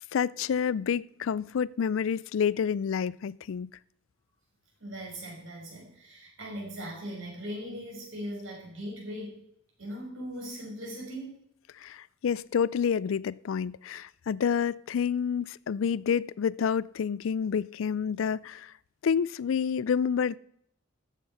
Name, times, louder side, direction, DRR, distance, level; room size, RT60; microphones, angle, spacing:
voice 1, 0.1-3.7 11.8-18.7 19.0-20.4, left 7 dB, 75° left, 0.4 m, -28 dB
voice 2, 4.8-9.4 9.8-11.4, equal, 75° right, 5.3 m, -39 dB
13.5 x 7.5 x 5.5 m
head